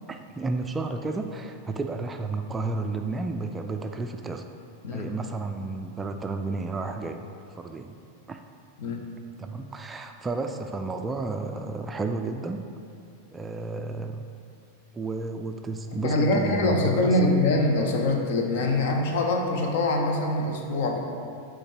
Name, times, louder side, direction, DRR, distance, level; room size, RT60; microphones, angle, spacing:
voice 1, 0.1-4.4 4.9-8.0 8.3-8.4 9.4-12.7 13.3-14.3 14.9-17.1, right 3 dB, 15° right, 5 dB, 0.3 m, -32 dB
voice 2, 16.0-21.0, left 2 dB, 55° left, 2 dB, 0.8 m, -24 dB
7.6 x 3.8 x 4.9 m, 2.4 s
figure-of-eight pair, 90°, 0 cm